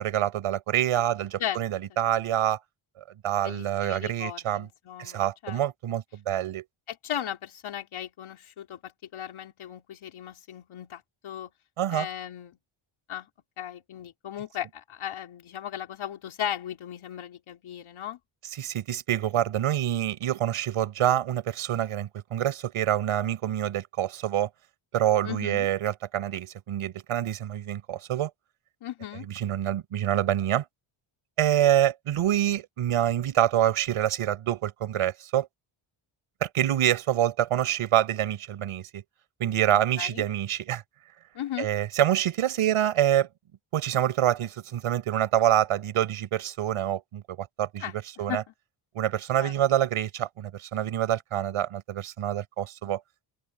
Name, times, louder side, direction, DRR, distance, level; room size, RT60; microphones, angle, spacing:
voice 1, 0.0-2.6 3.2-4.7 5.0-6.6 11.8-12.1 18.6-24.5 24.9-28.3 29.3-30.6 31.4-35.5 36.4-39.0 39.4-40.8 41.6-43.3 43.7-47.8 48.2-48.4 48.9-53.0, right 11 dB, 85° right, 6.5 m, -26 dB
voice 2, 3.4-5.6 6.9-11.5 11.9-12.6 13.1-13.3 13.6-18.2 25.2-25.7 28.8-29.3 40.0-40.2 41.3-41.7 47.8-48.4 49.4-49.9 52.8-52.9, left 10 dB, 70° left, 3.8 m, -37 dB
open air
cardioid pair, 135°, 50 cm